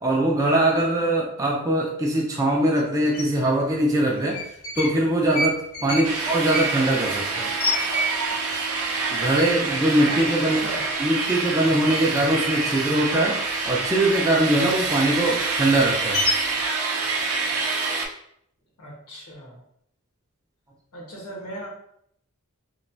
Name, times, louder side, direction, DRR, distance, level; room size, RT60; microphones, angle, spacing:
voice 1, 0.0-4.4 4.7-7.5 9.1-10.6 11.0-13.4 13.7-16.2, right 1 dB, 15° right, -3 dB, 0.3 m, -22 dB
sound 1, 3.1-3.2 4.2-5.0 5.3-8.5 8.8-8.9 9.2-9.7 10.1-10.2 10.5-11.3 11.6-14.0 14.4-16.6, left 1 dB, 65° left, 0.6 m, -29 dB
sound 2, 6.0-18.1, right 4 dB, 80° right, 0.5 m, -27 dB
voice 2, 10.3-10.9 18.8-19.6 20.9-21.7, right 1 dB, 85° left, -2 dB, 1.0 m, -38 dB
3.0 x 2.2 x 2.6 m, 0.71 s
head